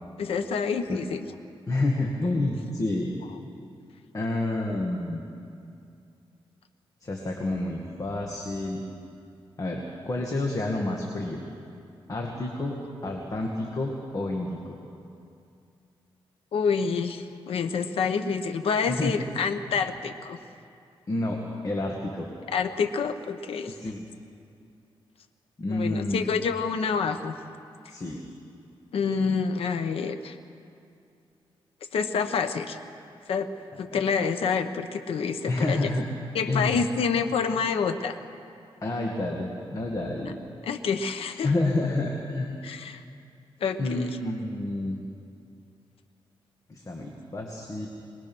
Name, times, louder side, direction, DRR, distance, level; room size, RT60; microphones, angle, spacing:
voice 1, 0.2-1.3 16.5-20.4 22.5-23.7 25.7-27.3 28.9-30.4 31.9-32.8 33.3-33.5 33.8-35.8 36.3-38.2 40.7-41.5 42.6-43.0 43.6-44.2, left 5 dB, 90° left, 8 dB, 1.0 m, -27 dB
voice 2, 1.7-3.1 4.1-5.2 7.0-8.8 9.6-11.4 12.1-12.8 13.0-14.8 18.9-19.2 21.1-22.3 23.7-24.1 25.6-26.3 27.9-28.2 33.9-34.0 35.5-36.1 36.4-36.8 38.8-40.4 41.4-42.5 43.8-45.0 46.7-47.9, left 2 dB, 35° left, 0 dB, 2.1 m, -29 dB
23.5 x 20.0 x 6.2 m, 2.5 s
wide cardioid pair, 110°, 10 cm